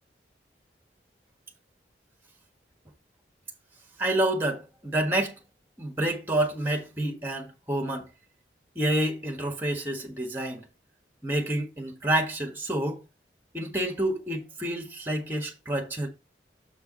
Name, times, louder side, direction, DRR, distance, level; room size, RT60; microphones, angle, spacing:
voice 1, 4.0-5.4 5.8-8.1 8.7-10.7 11.2-13.0 13.5-16.1, right 1 dB, 10° right, 1.5 m, -28 dB
7.1 x 4.7 x 4.3 m
head